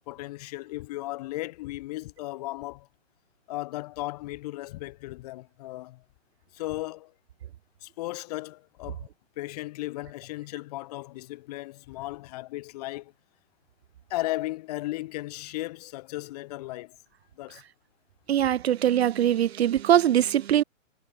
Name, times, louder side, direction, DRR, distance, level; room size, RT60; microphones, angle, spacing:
voice 1, 0.1-2.9 3.5-6.0 6.5-7.1 7.8-9.1 9.4-13.1 14.1-17.0 17.4-17.6, left 18 dB, 30° left, 1.5 m, -36 dB
voice 2, 18.3-20.6, right 11 dB, 50° right, 0.8 m, -22 dB
hypercardioid pair, 160°, 39 cm